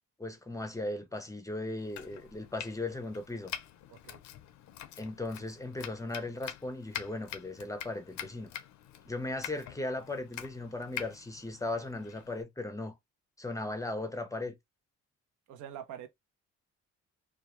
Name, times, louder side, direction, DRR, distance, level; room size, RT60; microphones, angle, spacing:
voice 1, 0.2-3.5 5.0-8.5 9.1-13.0 13.4-14.6, left 2 dB, 10° left, 0.5 m, -37 dB
Domestic sounds home sounds, 1.8-12.4, left 11 dB, 70° left, 0.5 m, -45 dB
voice 2, 3.9-4.2 15.5-16.1, right 10 dB, 85° right, 0.6 m, -44 dB
2.2 x 2.1 x 2.9 m
cardioid pair, 90°, 30 cm